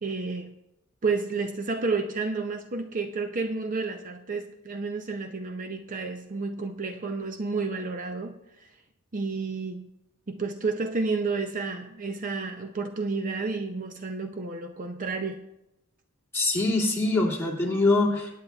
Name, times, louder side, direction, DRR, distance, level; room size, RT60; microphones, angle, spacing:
voice 1, 0.0-0.6 1.0-8.7 9.1-9.9 10.3-15.4, right 4 dB, 40° right, 6 dB, 0.5 m, -31 dB
voice 2, 16.3-18.4, left 2 dB, 10° left, -4 dB, 2.5 m, -24 dB
22.5 x 9.3 x 2.4 m, 0.90 s
head